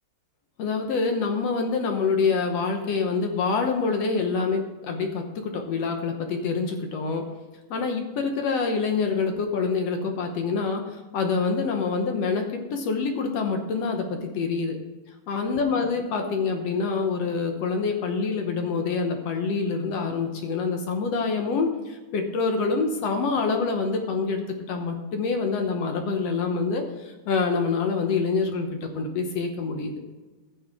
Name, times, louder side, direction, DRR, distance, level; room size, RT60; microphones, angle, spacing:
voice 1, 0.6-7.2 7.7-14.8 15.3-29.9, left 4 dB, 65° left, 4 dB, 1.6 m, -26 dB
15.5 x 6.7 x 3.6 m, 1.2 s
omnidirectional pair, 3.9 m